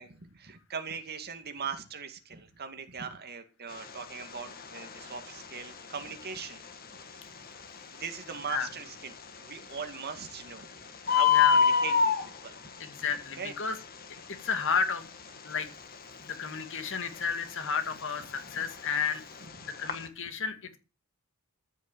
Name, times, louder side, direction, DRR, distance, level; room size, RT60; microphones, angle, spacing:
voice 1, 0.0-6.6 8.0-10.7 11.1-12.7 13.4-13.5 18.4-18.6, right 6 dB, 45° right, 6 dB, 2.2 m, -40 dB
Bird, 3.7-20.1, left 7 dB, 45° left, 1.7 m, -31 dB
voice 2, 12.8-13.8 14.3-15.1 15.4-15.7 16.2-19.2 19.8-20.8, left 6 dB, 60° left, 8 dB, 2.2 m, -32 dB
14.0 x 6.6 x 7.4 m, 0.33 s
head